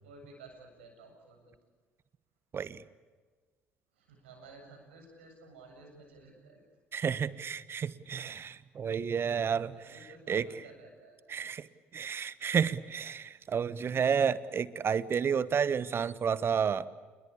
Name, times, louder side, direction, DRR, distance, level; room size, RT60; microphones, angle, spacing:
voice 1, 0.0-1.5 3.9-6.6 8.3-8.5 9.3-11.2 12.0-12.3, right 3 dB, 80° right, 3 dB, 7.7 m, -54 dB
voice 2, 6.9-9.7 10.3-10.4 11.3-11.7 11.9-16.9, right 7 dB, 40° right, 16 dB, 1.4 m, -31 dB
29.0 x 22.0 x 8.5 m, 1.4 s
hypercardioid pair, 55°, 6 cm